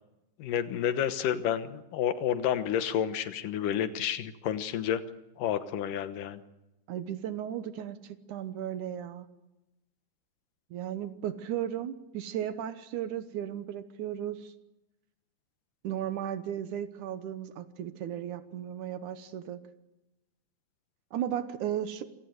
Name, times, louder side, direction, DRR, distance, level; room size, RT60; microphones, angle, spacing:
voice 1, 0.4-5.0 5.4-6.4, left 9 dB, 85° left, 11 dB, 2.8 m, -30 dB
voice 2, 6.9-9.3 10.7-14.5 15.8-19.6 21.1-22.1, right 10 dB, 75° right, 11 dB, 2.5 m, -35 dB
27.0 x 17.5 x 8.0 m, 0.95 s
omnidirectional pair, 3.7 m